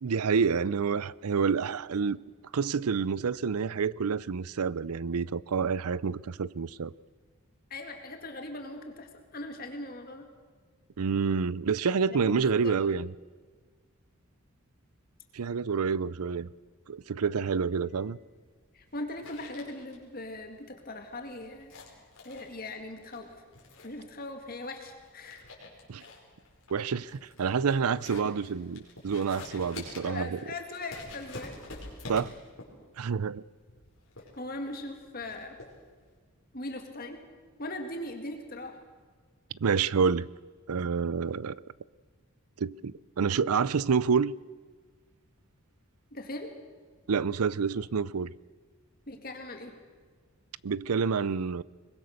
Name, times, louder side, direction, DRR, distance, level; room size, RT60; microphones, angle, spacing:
voice 1, 0.0-2.2 2.5-6.9 11.0-13.1 15.3-16.5 16.9-18.2 25.9-26.0 26.7-30.4 32.1-32.3 33.0-33.4 39.6-40.3 40.7-41.6 42.6-44.3 47.1-48.3 50.6-51.6, right 5 dB, 80° right, 0.5 m, -28 dB
voice 2, 7.7-10.3 12.1-12.3 12.6-13.0 18.7-21.7 22.2-23.3 23.8-25.4 29.5-29.6 30.0-31.6 34.4-35.6 36.5-37.2 37.6-38.8 46.1-46.5 49.1-49.7, left 2 dB, 40° left, 2.1 m, -40 dB
sound 1, 17.5-36.1, left 2 dB, 60° left, 5.0 m, -48 dB
22.5 x 21.0 x 6.6 m
head